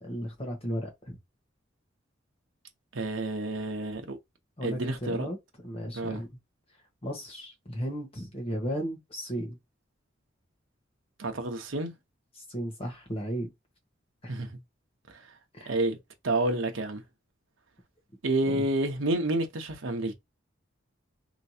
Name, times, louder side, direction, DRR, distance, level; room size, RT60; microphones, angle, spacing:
voice 1, 0.0-1.2 4.6-5.4 5.6-6.3 7.0-9.6 12.5-13.5 14.2-14.3 15.5-15.7 18.5-18.7, equal, 30° left, 1.2 m, -35 dB
voice 2, 2.9-4.2 4.6-5.3 5.9-6.2 11.2-11.9 14.3-14.5 15.1-15.3 15.7-16.0 16.2-17.0 18.2-20.1, right 2 dB, 75° right, 0.9 m, -29 dB
3.2 x 3.0 x 2.8 m
head